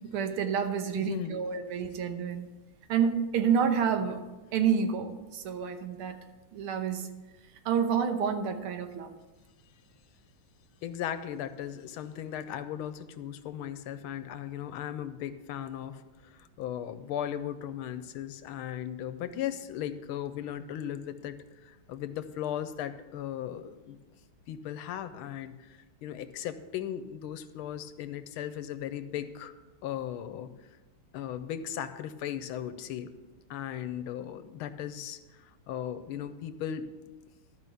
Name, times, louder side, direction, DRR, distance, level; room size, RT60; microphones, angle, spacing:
voice 1, 0.0-2.5 2.9-4.2 4.5-6.2 6.5-7.1 7.7-9.1, right 7 dB, 85° right, 7 dB, 1.8 m, -29 dB
voice 2, 0.9-1.4 10.8-24.0 24.5-29.5 29.8-30.5 31.1-33.1 33.5-36.9, left 10 dB, 80° left, 11 dB, 1.5 m, -37 dB
12.5 x 5.1 x 7.0 m, 1.2 s
omnidirectional pair, 2.3 m